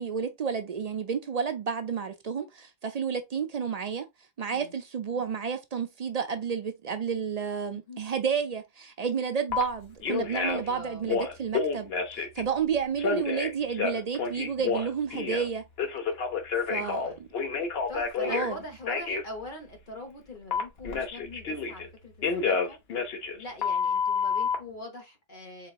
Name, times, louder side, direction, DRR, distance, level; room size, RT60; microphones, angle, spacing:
voice 1, 0.0-4.1 4.4-15.6 16.7-17.1 18.2-18.6, right 6 dB, 50° right, 0.5 m, -31 dB
voice 2, 4.5-4.8 7.7-8.0 10.5-11.1 16.8-17.2 17.9-22.8 23.3-25.7, left 2 dB, 50° left, 1.3 m, -43 dB
Telephone, 9.5-9.6 10.0-10.7 11.0-12.4 13.0-15.5 15.8-18.5 18.9-19.2 20.5-21.9 22.2-24.6, left 5 dB, 70° left, 1.1 m, -29 dB
4.0 x 3.8 x 2.4 m
omnidirectional pair, 1.1 m